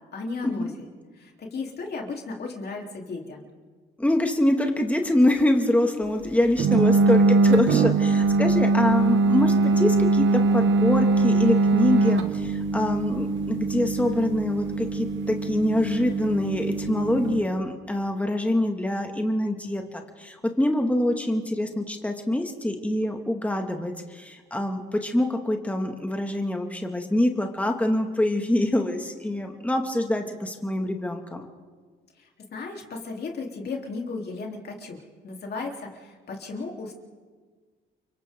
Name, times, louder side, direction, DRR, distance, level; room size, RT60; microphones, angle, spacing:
voice 1, 0.1-0.7 1.2-3.5 32.2-35.0 35.2-36.9, left 3 dB, 55° left, 0 dB, 3.6 m, -35 dB
voice 2, 4.0-31.5, left 1 dB, 5° left, 3 dB, 2.1 m, -25 dB
sound 1, 6.6-17.4, right 3 dB, 75° right, 1.8 m, -22 dB
30.0 x 24.0 x 3.8 m, 1.5 s
cardioid pair, 90°, 20 cm